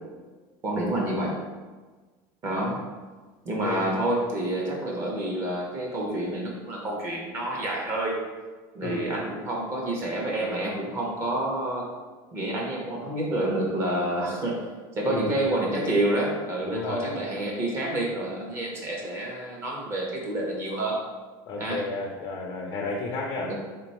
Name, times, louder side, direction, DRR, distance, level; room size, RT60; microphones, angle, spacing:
voice 1, 0.6-1.4 2.4-2.8 3.5-8.2 8.7-11.9 12.3-14.6 15.0-21.0 21.6-21.9 23.4-23.5, right 1 dB, 25° right, -2 dB, 0.5 m, -28 dB
voice 2, 15.0-15.4 16.7-17.1 21.5-23.5, left 3 dB, 30° left, -1 dB, 0.3 m, -32 dB
3.5 x 2.2 x 4.0 m, 1.3 s
cardioid pair, 175°, 10 cm